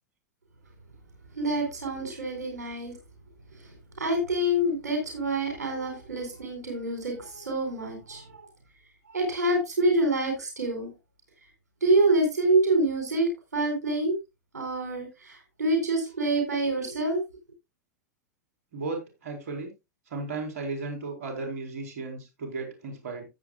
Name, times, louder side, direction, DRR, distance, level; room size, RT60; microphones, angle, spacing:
voice 1, 1.3-3.0 4.0-8.4 9.1-10.9 11.8-14.2 14.5-17.2, right 1 dB, 90° right, 3 dB, 4.1 m, -26 dB
voice 2, 18.7-19.7 20.1-23.3, right 3 dB, 70° right, 3 dB, 4.5 m, -35 dB
15.0 x 8.0 x 2.4 m, 0.24 s
hypercardioid pair, 105°, 9 cm